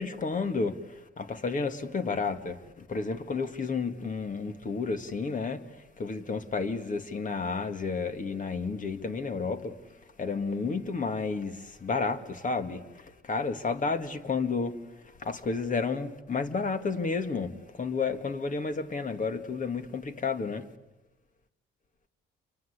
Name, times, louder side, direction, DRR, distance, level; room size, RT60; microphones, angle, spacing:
voice 1, 0.0-5.6 6.0-9.7 10.2-14.8 15.2-20.7, left 4 dB, 40° left, 2.3 m, -31 dB
28.5 x 24.5 x 8.4 m
cardioid pair, 90°, 20 cm